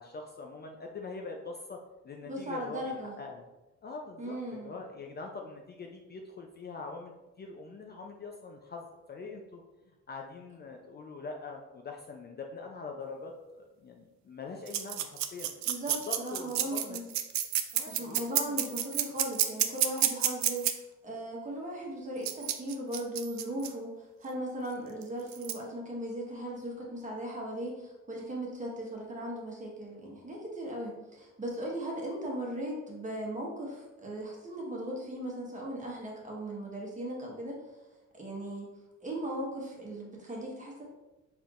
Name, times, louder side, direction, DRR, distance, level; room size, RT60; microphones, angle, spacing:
voice 1, 0.0-3.4 3.8-9.6 10.1-15.5 16.1-17.1 17.7-18.7, left 3 dB, 35° left, 2 dB, 0.4 m, -43 dB
voice 2, 2.3-3.1 4.2-4.7 15.6-17.1 17.9-20.7 21.0-37.6 38.1-38.7 39.0-40.8, right 1 dB, 25° right, -3 dB, 1.3 m, -38 dB
sound 1, 14.7-20.7 22.2-23.7 25.0-25.1 25.3-25.5, right 11 dB, 65° right, 0.4 m, -30 dB
4.4 x 3.5 x 2.5 m, 1.1 s
cardioid pair, 90°, 30 cm